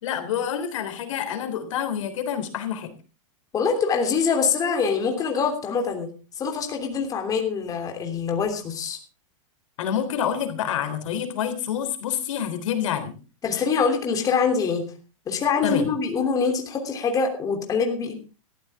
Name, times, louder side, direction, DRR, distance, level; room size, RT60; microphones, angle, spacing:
voice 1, 0.0-2.9 9.8-13.2 15.6-15.9, left 9 dB, 70° left, 8 dB, 3.6 m, -27 dB
voice 2, 3.5-6.1 6.4-9.0 13.4-14.8 15.3-18.2, left 5 dB, 20° left, 3 dB, 3.1 m, -24 dB
17.5 x 14.0 x 3.6 m, 0.33 s
supercardioid pair, 145°, 17 cm